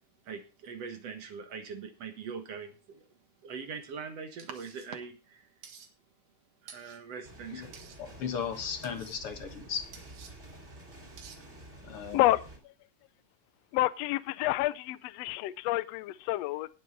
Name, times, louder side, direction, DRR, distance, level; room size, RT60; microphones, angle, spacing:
voice 1, 0.3-3.0 3.4-5.5 6.6-7.7, right 6 dB, 55° right, 7 dB, 2.2 m, -42 dB
sound 1, 4.4-4.9 5.6-5.9 6.7-7.0 7.7-8.0 8.8-9.2 9.9-10.3 11.2-11.4, right 7 dB, 80° right, 3.5 m, -51 dB
sound 2, 7.2-12.6, right 1 dB, 20° right, 3.7 m, -49 dB
voice 2, 8.0-9.9 11.8-12.2, left 7 dB, 50° left, 7 dB, 2.0 m, -36 dB
voice 3, 13.7-16.7, left 17 dB, 85° left, 16 dB, 1.4 m, -28 dB
18.0 x 7.8 x 3.9 m, 0.32 s
omnidirectional pair, 3.8 m